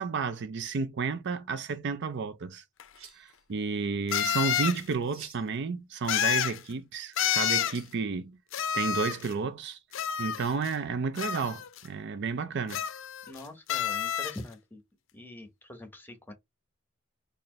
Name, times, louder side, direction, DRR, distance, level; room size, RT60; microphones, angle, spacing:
voice 1, 0.0-2.6 3.1-8.4 8.7-9.8 10.2-12.8, right 5 dB, 60° right, 0.5 m, -32 dB
sound 1, 2.8-2.9 4.1-4.8 6.1-6.6 7.2-7.8 8.5-9.3 9.9-10.7 11.2-11.8 12.7-13.4 13.7-14.4, left 9 dB, 65° left, 0.5 m, -29 dB
sound 2, 2.9-3.3 4.2-5.4 6.0-6.6 7.4-8.0, right 7 dB, 80° right, 0.9 m, -50 dB
voice 2, 13.3-14.8 15.1-16.3, left 2 dB, 10° left, 0.9 m, -44 dB
4.2 x 2.5 x 3.1 m
head